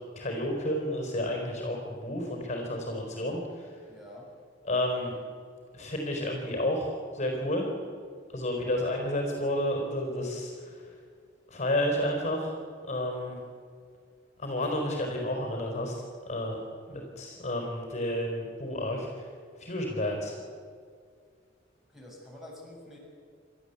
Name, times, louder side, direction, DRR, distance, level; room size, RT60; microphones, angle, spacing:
voice 1, 0.2-3.7 4.7-5.2 5.7-7.7 8.3-10.8 11.5-12.5 12.8-13.4 14.4-15.9 16.3-16.6 16.9-19.1 19.6-20.3, left 1 dB, 40° left, 2 dB, 4.5 m, -31 dB
voice 2, 3.9-4.3 8.5-8.7 21.9-23.0, left 1 dB, ahead, -3 dB, 6.8 m, -48 dB
29.5 x 13.5 x 8.4 m, 2.1 s
head